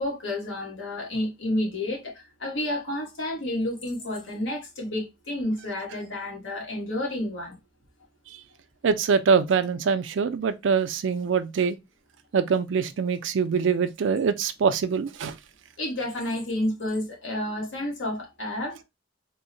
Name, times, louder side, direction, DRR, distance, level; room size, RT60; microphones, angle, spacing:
voice 1, 0.0-7.6 15.8-18.8, left 1 dB, 85° left, 1.3 m, -30 dB
voice 2, 8.8-11.8 12.3-15.3, right 6 dB, 75° right, 0.4 m, -24 dB
3.7 x 2.1 x 2.6 m
head